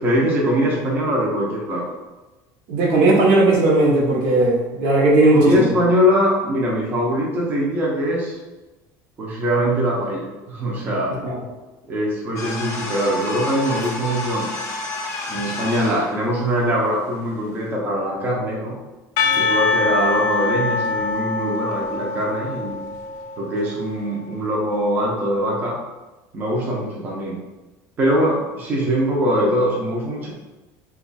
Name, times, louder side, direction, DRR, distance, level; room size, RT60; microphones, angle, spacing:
voice 1, 0.0-1.8 5.3-8.4 9.2-11.2 11.9-14.5 15.3-18.8 19.3-22.8 23.4-25.8 26.3-27.4 28.0-30.3, equal, 25° right, -3 dB, 0.5 m, -22 dB
voice 2, 2.7-5.7 11.2-11.4 19.4-19.5, right 2 dB, 70° right, -2 dB, 0.8 m, -16 dB
sound 1, 12.4-16.2, left 2 dB, 35° left, 0.7 m, -29 dB
Percussion / Church bell, 19.2-23.7, left 4 dB, 75° left, 0.3 m, -23 dB
2.9 x 2.3 x 4.0 m, 1.1 s
cardioid pair, 170°, 7 cm